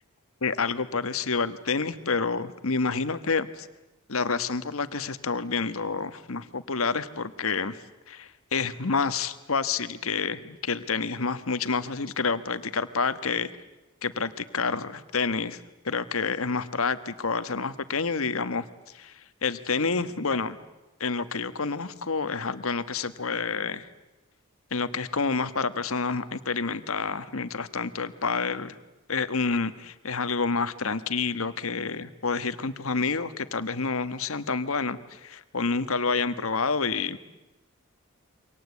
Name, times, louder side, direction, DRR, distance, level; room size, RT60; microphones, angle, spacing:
voice 1, 0.4-3.7 4.1-7.8 8.1-13.5 14.0-18.6 18.9-20.6 21.0-23.9 24.7-28.8 29.1-37.2, left 4 dB, 75° left, 11 dB, 1.3 m, -28 dB
28.5 x 25.0 x 8.4 m, 1.0 s
head